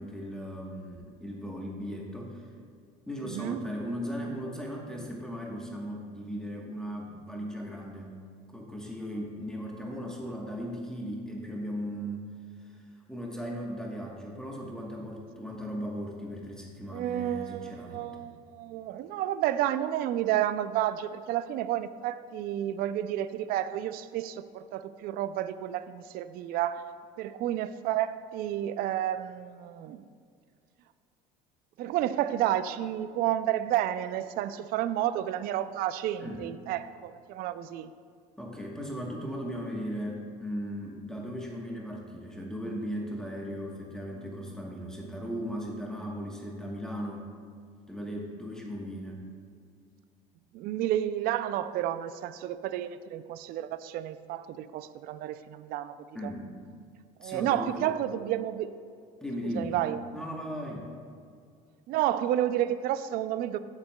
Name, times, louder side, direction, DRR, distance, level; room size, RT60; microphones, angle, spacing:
voice 1, 0.0-2.5 3.1-8.1 8.5-12.3 12.6-18.1 36.2-36.5 38.4-47.3 47.9-49.2 56.1-56.6 57.2-57.9 59.2-59.8 60.1-60.9, equal, 5° left, -2 dB, 1.1 m, -37 dB
voice 2, 3.2-3.6 16.9-26.9 27.2-30.0 31.8-37.9 50.5-56.0 56.2-56.3 57.2-58.7 59.4-60.0 61.9-63.6, right 12 dB, 55° right, 13 dB, 0.4 m, -31 dB
13.5 x 7.3 x 2.2 m, 2.2 s
supercardioid pair, 105°, 18 cm